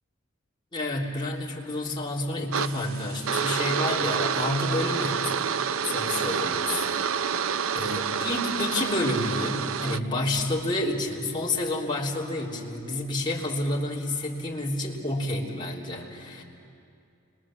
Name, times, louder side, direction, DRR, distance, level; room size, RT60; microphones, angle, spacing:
voice 1, 0.7-5.3 5.8-6.9 7.3-7.5 7.7-16.4, left 1 dB, 25° left, -4 dB, 3.2 m, -29 dB
sound 1, 2.5-10.0, right 7 dB, 80° right, 0.6 m, -28 dB
29.5 x 22.5 x 7.5 m, 2.5 s
head